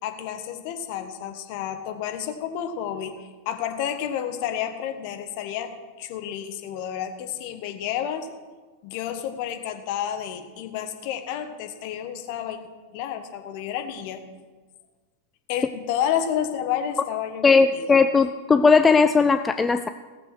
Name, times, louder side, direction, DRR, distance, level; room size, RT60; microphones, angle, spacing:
voice 1, 0.0-3.2 3.4-8.3 8.8-12.6 12.9-14.2 15.5-18.0, left 9 dB, 45° left, 6 dB, 1.3 m, -30 dB
voice 2, 17.4-19.9, left 4 dB, 15° left, 10 dB, 0.4 m, -18 dB
17.5 x 6.9 x 6.1 m, 1.4 s
figure-of-eight pair, 90°, 0 cm